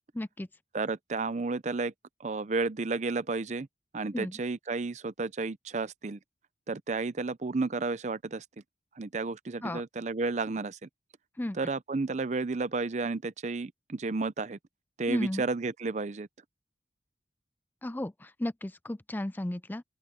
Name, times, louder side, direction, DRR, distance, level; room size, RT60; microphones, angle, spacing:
voice 1, 0.1-0.5 4.1-4.4 9.6-9.8 11.4-11.7 15.1-15.4 17.8-19.8, left 1 dB, 10° left, 0.4 m, -34 dB
voice 2, 0.7-1.9 2.2-3.7 3.9-6.2 6.7-8.4 9.0-10.9 11.6-14.6 15.0-16.3, right 3 dB, 40° right, 0.6 m, -32 dB
open air
head